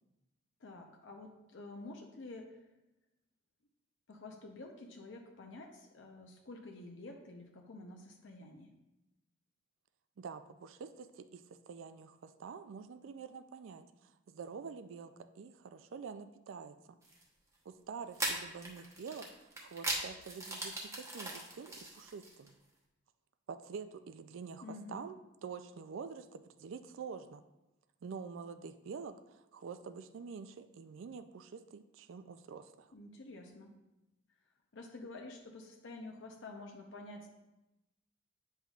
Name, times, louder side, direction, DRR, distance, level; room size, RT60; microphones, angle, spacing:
voice 1, 0.6-2.6 4.1-8.7 24.6-25.1 32.9-33.8 34.7-37.3, left 2 dB, 65° left, 2 dB, 0.6 m, -49 dB
voice 2, 10.2-17.0 17.7-22.6 23.5-27.4 28.0-32.9, right 5 dB, 70° right, 11 dB, 0.4 m, -47 dB
sound 1, 17.0-17.2 18.1-22.5, right 2 dB, 15° right, 0.9 m, -39 dB
8.7 x 5.6 x 2.4 m, 0.98 s
head